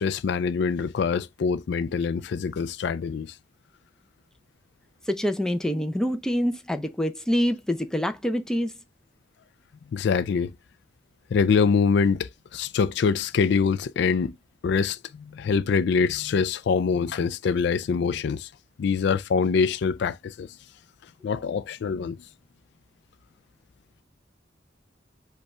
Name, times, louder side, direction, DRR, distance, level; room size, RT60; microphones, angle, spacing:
voice 1, 0.0-3.3 9.9-10.5 11.3-14.3 14.6-18.5 18.8-20.5 21.2-22.2, left 5 dB, 65° left, 0.3 m, -24 dB
voice 2, 5.1-8.7, equal, 5° left, 0.5 m, -26 dB
5.4 x 2.3 x 4.2 m
head